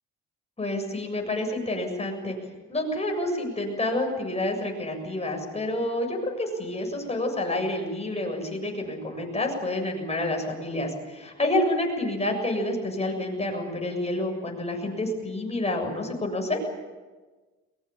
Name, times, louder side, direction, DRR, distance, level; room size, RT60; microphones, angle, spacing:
voice 1, 0.6-2.4 2.7-16.6, left 1 dB, 20° left, 2 dB, 7.3 m, -28 dB
22.5 x 22.0 x 8.7 m, 1.3 s
cardioid pair, 90°, 30 cm